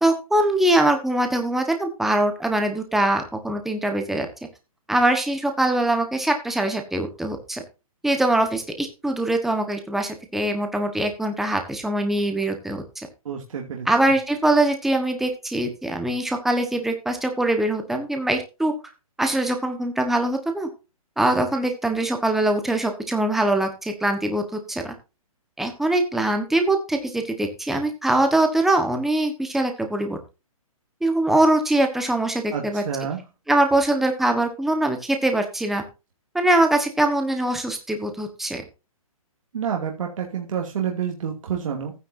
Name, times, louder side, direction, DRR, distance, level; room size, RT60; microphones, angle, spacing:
voice 1, 0.0-4.3 4.9-7.6 8.0-13.1 13.8-18.7 19.2-20.7 21.2-24.9 25.6-30.2 31.0-32.8 33.5-35.8 36.3-38.6, right 1 dB, ahead, 5 dB, 1.3 m, -22 dB
voice 2, 13.2-13.9 32.5-33.2 39.5-41.9, right 7 dB, 60° right, 1 dB, 2.6 m, -28 dB
15.0 x 9.8 x 2.7 m, 0.29 s
hypercardioid pair, 165°, 18 cm